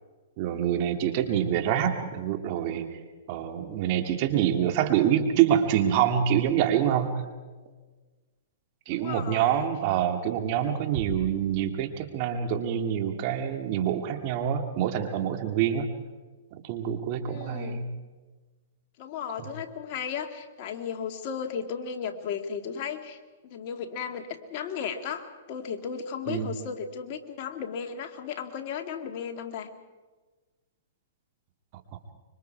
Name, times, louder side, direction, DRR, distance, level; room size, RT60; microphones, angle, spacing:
voice 1, 0.4-2.9 3.3-7.2 8.9-15.9 16.6-17.8 26.3-26.5, right 9 dB, 45° right, 6 dB, 2.5 m, -26 dB
voice 2, 8.9-9.7 17.2-17.8 19.0-29.7, left 7 dB, 45° left, 5 dB, 2.1 m, -35 dB
sound 1, 10.9-12.6, right 4 dB, 75° right, 3.8 m, -41 dB
25.5 x 24.0 x 4.7 m, 1.3 s
hypercardioid pair, 130°, 0 cm